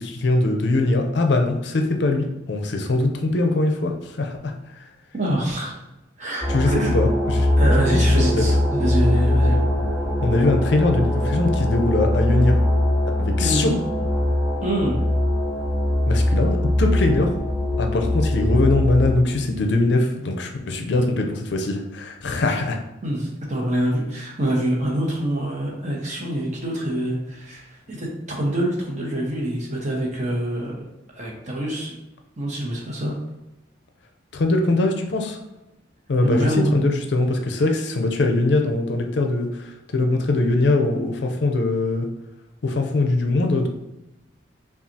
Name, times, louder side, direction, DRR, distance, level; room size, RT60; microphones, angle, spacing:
voice 1, 0.0-3.9 4.2-4.5 6.5-7.5 7.9-8.4 10.2-12.6 13.2-13.7 16.1-17.3 17.8-22.8 34.3-35.4 36.1-39.6 39.9-42.1 42.6-43.7, left 2 dB, 60° left, 4 dB, 0.5 m, -21 dB
voice 2, 5.1-5.8 6.2-6.9 7.6-9.6 13.4-13.8 14.6-15.0 23.0-30.8 31.1-31.9 32.4-33.1 36.2-36.7, right 1 dB, 40° right, -2 dB, 1.0 m, -25 dB
sound 1, 6.4-19.2, left 1 dB, 10° right, 0.6 m, -21 dB
5.6 x 2.4 x 2.7 m, 0.95 s
head